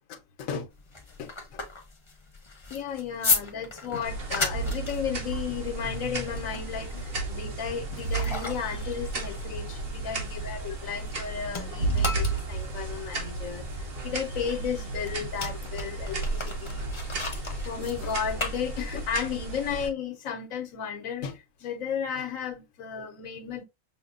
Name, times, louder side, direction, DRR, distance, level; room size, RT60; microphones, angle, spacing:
voice 1, 0.1-0.7 1.2-1.6 2.7-13.6 14.0-16.9 17.6-23.6, left 7 dB, 85° left, 1.2 m, -34 dB
sound 1, 0.7-11.2 11.5-19.2, left 3 dB, 30° left, 0.7 m, -35 dB
sound 2, 4.0-19.9, right 3 dB, 50° right, 1.2 m, -33 dB
6.1 x 2.1 x 2.4 m
omnidirectional pair, 1.4 m